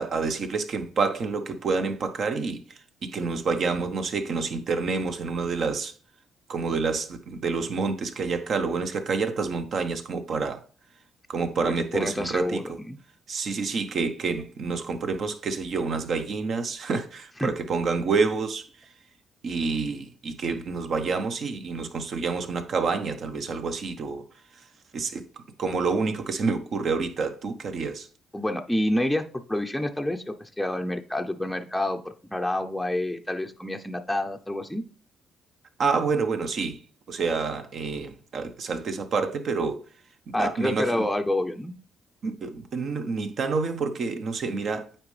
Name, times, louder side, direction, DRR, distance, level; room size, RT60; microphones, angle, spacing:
voice 1, 0.0-5.9 6.5-10.6 11.3-12.8 13.3-18.9 19.4-24.2 24.5-24.7 24.9-25.2 25.6-28.1 35.8-36.8 37.1-39.8 40.3-41.0 42.2-44.9, right 4 dB, 60° right, 1.0 m, -28 dB
voice 2, 11.6-12.6 12.9-13.0 17.4-17.5 28.3-34.8 40.3-41.7, left 1 dB, 5° left, 0.6 m, -28 dB
8.8 x 4.3 x 3.3 m
cardioid pair, 90°, 0 cm